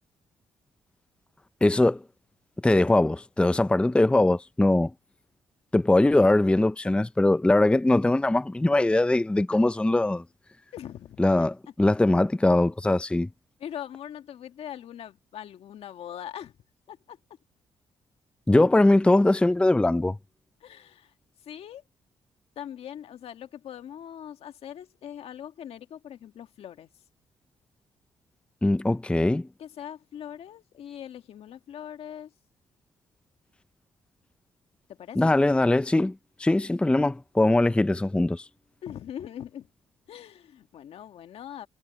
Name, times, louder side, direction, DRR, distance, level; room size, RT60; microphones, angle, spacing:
voice 1, 1.6-2.0 2.6-4.9 5.7-10.2 11.2-13.3 18.5-20.2 28.6-29.5 35.2-36.1 36.4-38.4, left 2 dB, 10° left, 0.6 m, -21 dB
voice 2, 10.7-11.5 13.6-16.5 16.9-17.2 20.6-21.1 21.4-21.8 22.6-26.9 29.6-32.3 35.0-35.3 38.8-39.7 40.1-41.7, left 10 dB, 70° left, 1.8 m, -41 dB
cardioid pair, 70°, 10 cm